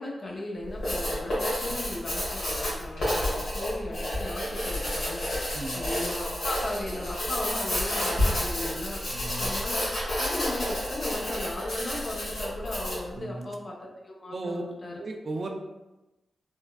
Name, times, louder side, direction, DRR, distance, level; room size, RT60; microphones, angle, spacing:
voice 1, 0.0-9.0 9.4-13.8 14.0-15.0, left 1 dB, 55° left, -2 dB, 0.7 m, -37 dB
Writing, 0.6-13.1, left 1 dB, 80° left, 1.4 m, -30 dB
voice 2, 9.1-9.4 13.1-13.5 14.3-14.6 15.0-15.5, right 2 dB, 60° right, 3 dB, 0.4 m, -35 dB
3.4 x 2.2 x 2.3 m, 1.0 s
supercardioid pair, 40°, 0 cm